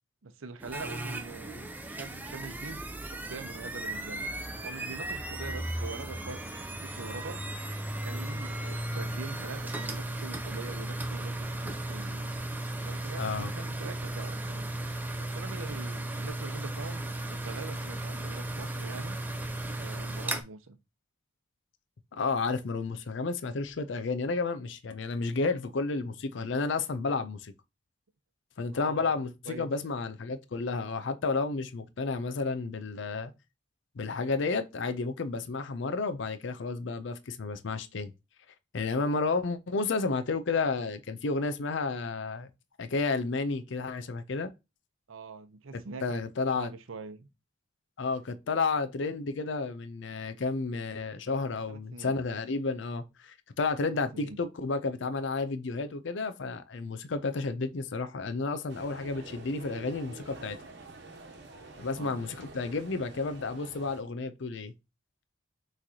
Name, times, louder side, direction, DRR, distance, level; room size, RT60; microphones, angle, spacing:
voice 1, 0.2-6.5 6.8-12.3 12.8-14.7 15.2-19.2 19.8-20.8 28.7-29.7 45.1-46.2 46.6-47.3 51.7-52.1 53.9-54.4 61.9-62.2, right 4 dB, 85° right, 0.6 m, -44 dB
sound 1, 0.6-20.4, right 1 dB, 10° right, 0.4 m, -36 dB
voice 2, 13.2-13.5 22.1-27.5 28.6-33.3 34.0-38.1 38.7-42.5 42.8-44.5 45.7-46.7 48.0-60.6 61.8-64.7, left 3 dB, 70° left, 0.5 m, -31 dB
sound 2, 58.7-64.0, right 2 dB, 60° right, 1.1 m, -47 dB
6.0 x 3.2 x 2.7 m
head